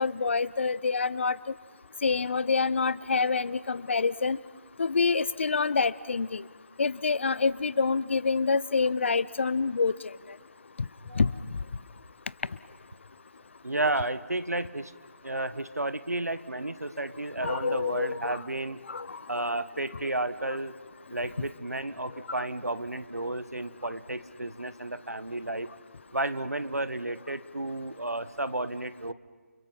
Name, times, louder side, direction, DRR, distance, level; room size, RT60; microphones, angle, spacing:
voice 1, 0.0-1.4 2.0-4.4 4.8-6.4 6.8-10.1 11.1-11.3 17.4-18.4 18.9-19.4, left 4 dB, 50° left, 19 dB, 0.7 m, -27 dB
voice 2, 13.6-14.9 15.2-18.8 19.3-20.8 21.1-25.7 26.1-29.1, right 2 dB, 85° right, 13 dB, 1.4 m, -32 dB
30.0 x 28.5 x 5.8 m, 1.5 s
figure-of-eight pair, 155°, 8 cm